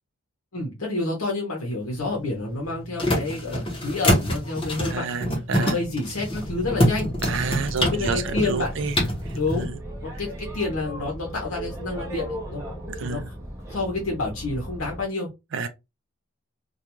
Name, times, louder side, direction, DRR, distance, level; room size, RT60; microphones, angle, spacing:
voice 1, 0.5-5.1 5.6-7.1 7.8-8.7 9.3-9.7 10.0-12.7 13.0-13.3 13.7-15.3, left 3 dB, 75° left, 0.9 m, -29 dB
sound 1, 1.8-9.7, equal, 25° left, 0.8 m, -26 dB
voice 2, 4.9-5.8 7.2-9.0 9.6-9.8 12.9-13.3 15.5-15.7, right 5 dB, 60° right, 0.4 m, -29 dB
Boat Water vehicle, 6.2-15.1, equal, 15° right, 0.6 m, -35 dB
2.4 x 2.3 x 2.9 m
head